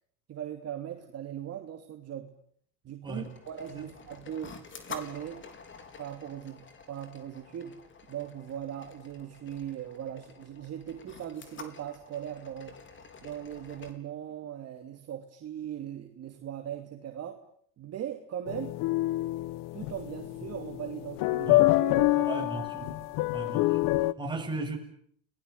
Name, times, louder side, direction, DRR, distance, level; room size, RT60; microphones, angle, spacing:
voice 1, 0.3-2.3 2.8-4.6 4.9-5.4 6.0-7.8 8.1-12.7 13.2-17.4 17.8-18.8 19.7-22.5 22.8-23.1, right 10 dB, 40° right, 4 dB, 2.9 m, -39 dB
sound 1, 3.1-13.9, left 5 dB, 30° left, 4.4 m, -48 dB
sound 2, 18.5-24.1, left 18 dB, 60° left, 1.1 m, -27 dB
voice 2, 22.2-23.0 23.3-24.8, right 2 dB, 10° right, 2 dB, 7.7 m, -36 dB
30.0 x 20.0 x 9.5 m, 0.65 s
supercardioid pair, 110°, 38 cm